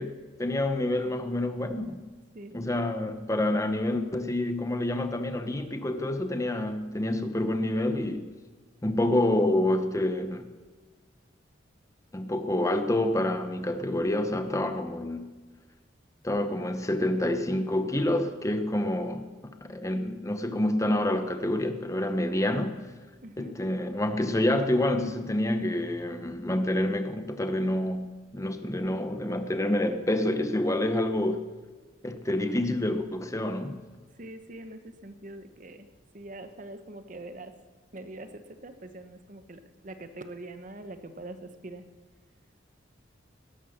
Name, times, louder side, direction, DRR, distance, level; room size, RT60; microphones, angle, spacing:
voice 1, 0.0-2.0 2.5-8.3 8.8-10.5 12.1-15.3 16.2-22.8 23.4-31.5 32.0-33.8, left 1 dB, 15° left, 8 dB, 0.8 m, -28 dB
voice 2, 23.2-23.6 34.1-37.6 37.9-41.8, right 2 dB, 45° right, 9 dB, 1.0 m, -43 dB
18.0 x 11.5 x 6.6 m, 1.4 s
head